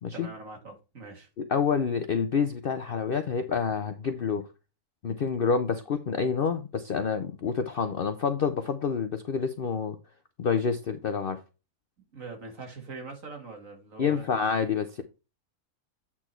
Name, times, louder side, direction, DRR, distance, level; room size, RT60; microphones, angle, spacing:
voice 1, 0.1-1.3 12.1-14.4, right 3 dB, 60° right, 2.4 m, -42 dB
voice 2, 1.4-4.5 5.0-10.0 10.4-11.4 14.0-15.0, left 6 dB, 50° left, 0.7 m, -28 dB
8.5 x 4.4 x 4.4 m
omnidirectional pair, 1.6 m